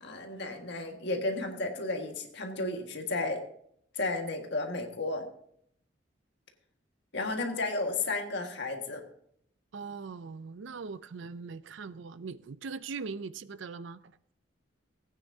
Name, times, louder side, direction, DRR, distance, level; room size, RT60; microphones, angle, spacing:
voice 1, 0.0-3.4 3.9-5.2 7.1-9.0, left 2 dB, 60° left, 1.7 m, -33 dB
voice 2, 9.7-14.1, right 4 dB, 70° right, 0.5 m, -41 dB
17.5 x 9.2 x 2.7 m
head